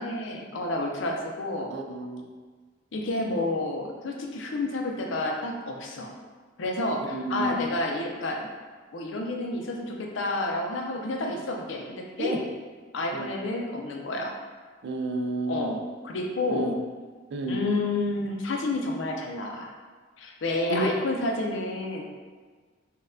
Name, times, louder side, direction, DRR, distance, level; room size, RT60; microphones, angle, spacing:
voice 1, 0.0-1.7 2.9-6.1 6.6-8.5 8.9-12.4 12.9-14.3 15.5-15.8 16.0-16.7 17.5-19.7 20.2-22.1, left 2 dB, 70° left, 1 dB, 0.5 m, -30 dB
voice 2, 1.7-2.3 7.1-7.7 12.2-12.4 13.1-13.3 14.8-15.8 16.5-16.7 17.3-17.6 20.7-20.9, right 1 dB, 60° right, 3 dB, 0.4 m, -30 dB
4.0 x 2.3 x 2.5 m, 1.5 s
head